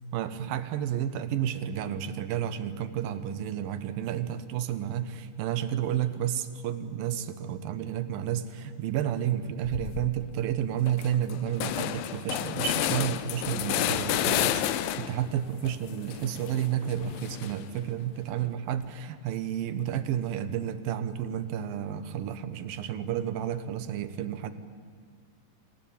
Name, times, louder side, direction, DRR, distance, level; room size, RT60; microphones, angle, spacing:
voice 1, 0.1-24.5, right 10 dB, 80° right, 12 dB, 2.9 m, -31 dB
sound 1, 9.6-10.1 10.5-10.6 10.9-15.3 15.7-17.8, left 12 dB, 85° left, 2.6 m, -31 dB
27.0 x 16.0 x 9.0 m, 2.1 s
omnidirectional pair, 4.1 m